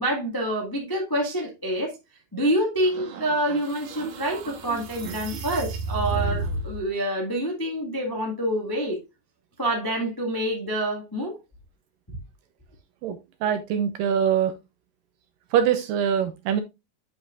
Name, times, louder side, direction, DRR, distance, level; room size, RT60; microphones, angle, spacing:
voice 1, 0.0-1.9 2.3-9.0 9.6-11.4, right 1 dB, 30° left, 0.4 m, -27 dB
sound 1, 2.8-6.9, right 3 dB, 60° right, 2.1 m, -32 dB
voice 2, 13.0-14.5 15.5-16.6, right 8 dB, 80° right, 2.0 m, -23 dB
9.4 x 6.0 x 2.5 m
omnidirectional pair, 4.5 m